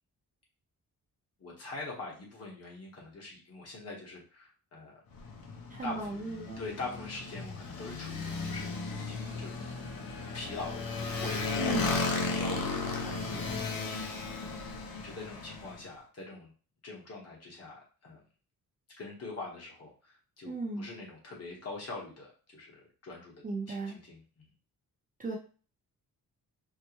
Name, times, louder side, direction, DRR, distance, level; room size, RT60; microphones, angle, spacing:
voice 1, 1.4-5.0 5.8-6.1 6.6-9.7 10.2-16.5 16.8-18.2 19.0-23.3 23.7-24.5, left 3 dB, 45° left, -2 dB, 1.2 m, -44 dB
Motorcycle, 5.1-15.8, left 3 dB, 80° left, 0.7 m, -35 dB
voice 2, 5.7-6.6 11.6-11.9 20.4-20.9 23.4-24.0 25.2-25.4, right 2 dB, 25° right, 0 dB, 0.5 m, -36 dB
4.5 x 2.1 x 2.9 m, 0.37 s
wide cardioid pair, 175°, 34 cm